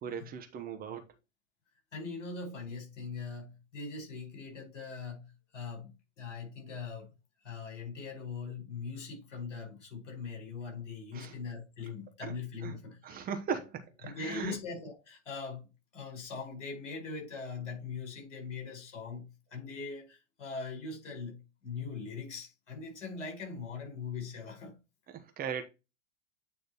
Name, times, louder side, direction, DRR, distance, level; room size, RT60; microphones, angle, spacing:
voice 1, 0.0-1.1 11.1-11.3 11.8-11.9 12.2-12.3 12.6-14.6 25.1-25.6, right 7 dB, 25° right, 0.9 m, -38 dB
voice 2, 1.9-5.9 6.2-7.1 7.4-13.2 14.0-15.7 15.9-24.8, left 5 dB, 65° left, 4.4 m, -41 dB
8.9 x 3.2 x 4.1 m
figure-of-eight pair, 100°, 38 cm